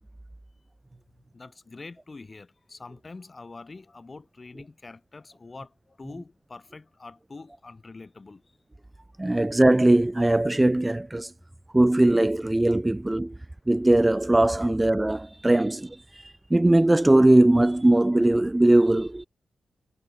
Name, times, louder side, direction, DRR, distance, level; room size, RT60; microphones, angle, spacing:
voice 1, 0.9-8.6 8.9-9.0 9.4-9.5 14.6-14.7 16.1-16.3, left 3 dB, 35° left, 6.9 m, -45 dB
voice 2, 9.2-11.3 11.7-13.3 13.7-19.2, right 1 dB, 15° right, 0.3 m, -20 dB
cardioid pair, 60°, 0 cm